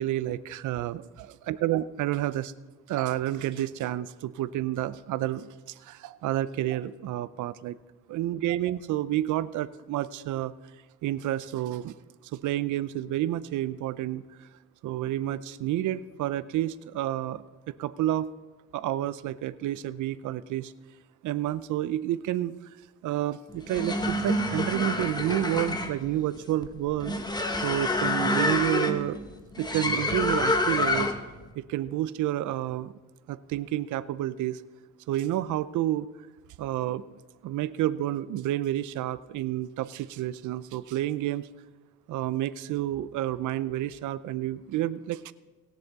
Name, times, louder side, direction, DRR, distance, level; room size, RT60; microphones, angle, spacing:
voice 1, 0.0-2.5 2.9-7.8 8.1-10.5 11.0-11.9 12.3-14.5 14.8-18.3 18.7-20.7 21.2-22.6 23.0-27.1 27.6-29.2 29.6-31.1 31.6-32.9 33.3-34.6 35.1-36.1 36.6-37.1 37.4-41.5 42.1-45.3, right 13 dB, 80° right, 17 dB, 0.6 m, -30 dB
sound 1, 23.5-31.4, left 2 dB, 15° left, 1.2 m, -28 dB
20.0 x 7.2 x 4.0 m, 1.2 s
cardioid pair, 90°, 30 cm